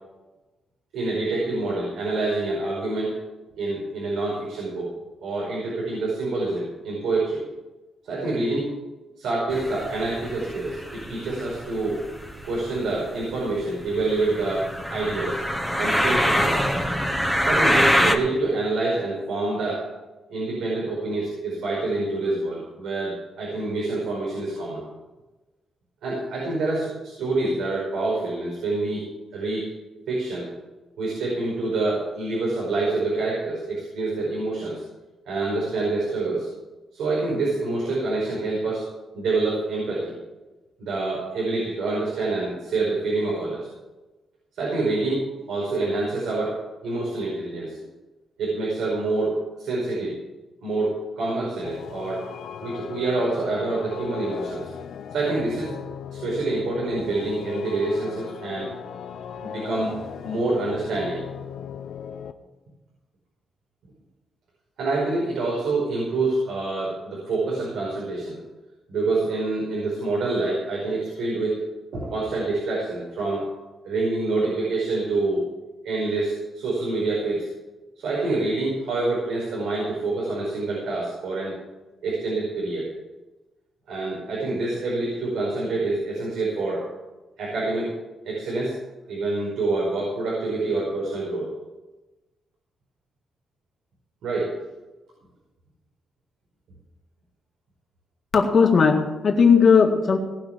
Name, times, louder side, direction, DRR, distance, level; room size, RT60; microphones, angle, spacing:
voice 1, 0.9-3.2 3.6-4.9 5.2-7.4 8.0-8.7 9.2-12.1 12.4-15.4 15.8-16.7 17.4-19.8 20.3-24.8 26.0-29.1 29.3-29.7 30.1-30.5 31.0-34.8 35.3-36.5 36.9-38.8 39.1-40.1 40.8-43.7 44.6-46.5 46.8-47.9 48.4-50.2 50.6-52.2 52.6-54.7 55.1-55.7 56.1-58.7 59.4-59.9 60.2-61.2 64.8-68.4 68.9-71.6 71.9-73.5 73.8-75.4 75.8-77.5 78.0-81.6 82.0-82.9 83.9-86.8 87.4-87.9 88.2-88.7 89.1-91.5 94.2-94.6, right 2 dB, 85° right, -4 dB, 5.0 m, -26 dB
sound 1, 9.5-18.1, equal, 5° right, 1.1 m, -25 dB
sound 2, 51.6-62.3, left 8 dB, 60° left, 0.8 m, -38 dB
voice 2, 98.3-100.2, left 5 dB, 40° left, 2 dB, 1.9 m, -17 dB
18.0 x 6.1 x 7.3 m, 1.1 s
wide cardioid pair, 170°, 0 cm